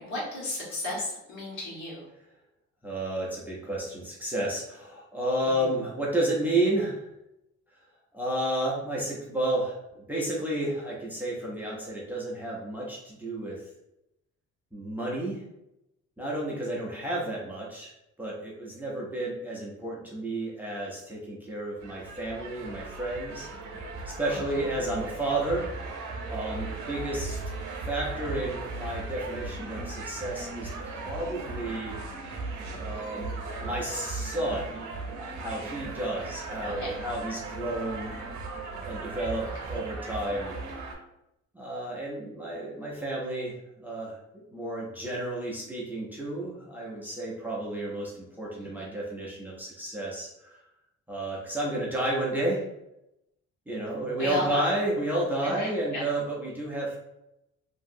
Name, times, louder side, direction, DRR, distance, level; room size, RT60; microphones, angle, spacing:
voice 1, 0.0-2.1 5.4-5.7 24.3-24.6 36.6-37.0 39.4-39.8 48.6-48.9 54.2-54.7 55.4-56.0, left 1 dB, 75° left, -5 dB, 1.4 m, -35 dB
voice 2, 2.8-7.1 8.1-13.6 14.7-15.4 16.2-17.9 18.2-23.5 24.1-25.7 26.3-27.4 27.8-32.0 32.8-33.3 33.6-35.0 35.4-38.1 38.8-40.6 41.5-50.6 51.1-52.6 53.7-57.0, right 1 dB, 5° right, -4 dB, 0.5 m, -31 dB
sound 1, 21.8-40.9, right 3 dB, 85° right, 0.7 m, -37 dB
2.9 x 2.6 x 2.5 m, 0.87 s
cardioid pair, 150°, 29 cm